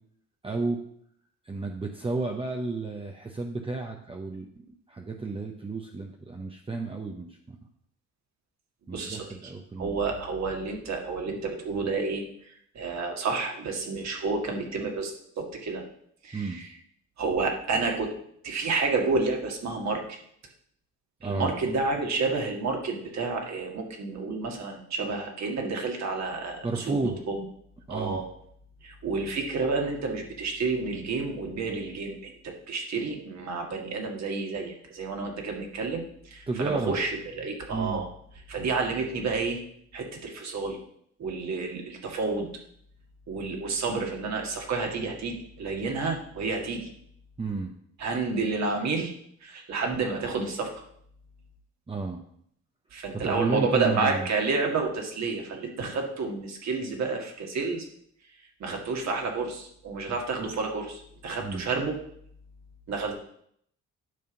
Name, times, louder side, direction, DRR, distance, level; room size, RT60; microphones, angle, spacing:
voice 1, 0.4-0.8 1.4-7.6 8.9-10.0 16.3-16.6 21.2-21.5 26.6-27.2 27.9-28.2 36.5-37.0 37.7-38.1 47.4-47.7 51.9-52.2 53.2-54.3 60.1-60.2 61.4-61.6, right 3 dB, 20° right, 2 dB, 0.8 m, -32 dB
voice 2, 8.9-9.3 9.8-12.2 12.8-15.1 15.4-15.8 16.2-16.7 17.2-18.1 18.4-20.2 21.2-27.4 27.9-28.3 28.8-37.1 37.4-38.1 38.5-39.6 39.9-40.8 41.2-42.5 43.3-46.9 48.0-49.1 49.4-50.7 52.9-57.9 58.6-62.0 62.9-63.1, right 4 dB, 60° right, 2 dB, 1.9 m, -30 dB
9.5 x 3.6 x 7.0 m, 0.68 s
cardioid pair, 90°, 30 cm